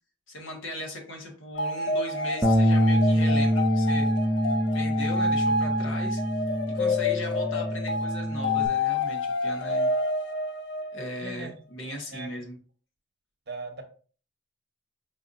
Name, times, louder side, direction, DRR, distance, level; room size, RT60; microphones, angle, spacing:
voice 1, 0.3-4.1 4.7-6.2 6.7-9.9 10.9-12.6, left 1 dB, 90° left, 0 dB, 1.3 m, -38 dB
sound 1, 1.5-11.3, left 2 dB, 65° left, 0.4 m, -28 dB
Bass guitar, 2.4-8.7, equal, 10° right, 0.3 m, -25 dB
voice 2, 11.2-12.3 13.5-13.8, right 3 dB, 55° right, 4 dB, 0.8 m, -40 dB
5.5 x 2.7 x 2.5 m, 0.41 s
head